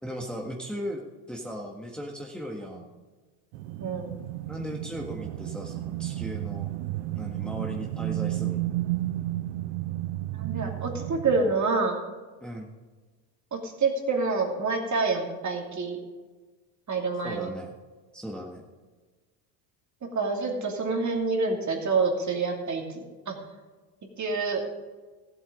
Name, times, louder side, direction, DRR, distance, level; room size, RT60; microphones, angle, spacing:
voice 1, 0.0-2.9 4.5-6.7 7.1-8.7 12.4-12.7 17.2-17.8 18.1-18.6, equal, ahead, 0 dB, 1.6 m, -37 dB
sound 1, 3.5-11.5, right 15 dB, 75° right, 0.7 m, -32 dB
voice 2, 3.8-4.1 10.3-12.0 13.5-16.0 16.9-17.5 20.1-23.4 24.2-24.6, right 4 dB, 35° right, 1 dB, 2.8 m, -27 dB
14.5 x 8.0 x 5.1 m, 1.3 s
hypercardioid pair, 75°, 49 cm